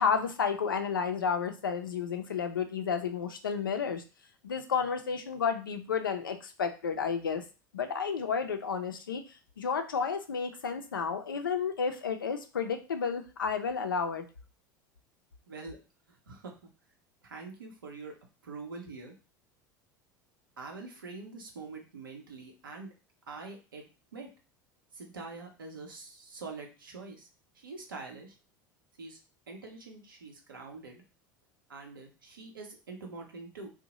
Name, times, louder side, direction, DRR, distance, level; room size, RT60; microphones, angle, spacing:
voice 1, 0.0-4.0 4.4-7.4 7.7-9.2 9.6-14.2, left 6 dB, 90° left, 7 dB, 0.4 m, -31 dB
voice 2, 15.5-15.8 16.1-16.5 17.2-18.2 18.4-19.1 20.6-22.9 23.3-24.3 24.9-27.3 27.5-28.4 29.0-29.2 29.5-31.0 31.7-33.7, right 3 dB, 85° right, 2 dB, 0.7 m, -45 dB
2.7 x 2.1 x 2.9 m, 0.32 s
hypercardioid pair, 80°, 11 cm